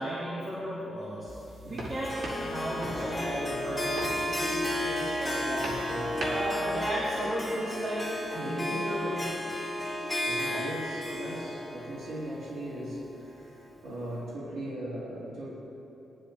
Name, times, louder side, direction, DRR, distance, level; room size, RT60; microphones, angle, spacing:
voice 1, 0.0-1.3 1.7-5.8 6.2-9.3 10.5-10.7 11.1-11.5, right 1 dB, 40° right, -8 dB, 3.1 m, -35 dB
sound 1, 1.3-6.5, right 1 dB, 65° right, 2.9 m, -41 dB
Harp, 2.0-13.3, left 1 dB, ahead, 3.6 m, -33 dB
voice 2, 10.2-15.5, right 1 dB, 90° right, -8 dB, 3.4 m, -39 dB
21.5 x 12.0 x 3.2 m, 2.8 s
cardioid pair, 90°, 0 cm